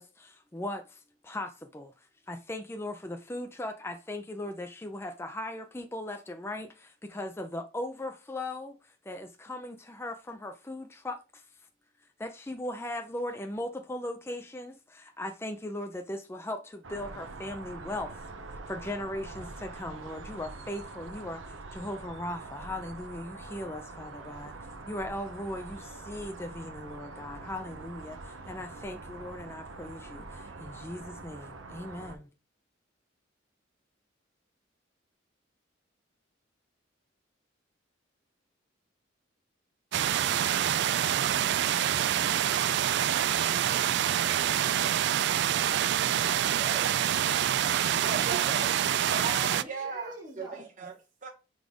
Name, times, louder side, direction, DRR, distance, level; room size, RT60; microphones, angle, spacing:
voice 1, 0.0-11.4 12.2-18.2 18.7-24.6 24.9-32.3, left 1 dB, 15° left, 0.5 m, -38 dB
sound 1, 16.8-32.2, right 3 dB, 85° right, 0.8 m, -44 dB
sound 2, 39.9-49.6, right 10 dB, 60° right, 0.3 m, -26 dB
voice 2, 43.6-44.0 47.9-48.8 49.1-51.3, right 4 dB, 40° right, 0.9 m, -38 dB
voice 3, 46.4-46.9 49.6-50.7, right 2 dB, 20° right, 2.1 m, -46 dB
5.3 x 4.0 x 4.8 m
head